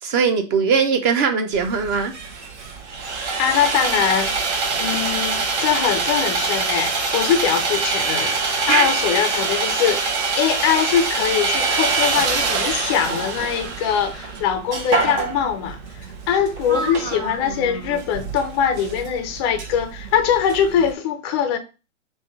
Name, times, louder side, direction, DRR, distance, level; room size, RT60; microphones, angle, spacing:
voice 1, 0.0-2.1 8.7-8.9 16.7-18.0, right 5 dB, 35° right, 0.8 m, -21 dB
Sawing, 1.5-20.9, right 4 dB, 60° right, 1.2 m, -25 dB
voice 2, 3.4-10.0 10.4-21.6, left 8 dB, 20° left, 0.4 m, -22 dB
3.6 x 2.6 x 4.6 m
hypercardioid pair, 135°, 39 cm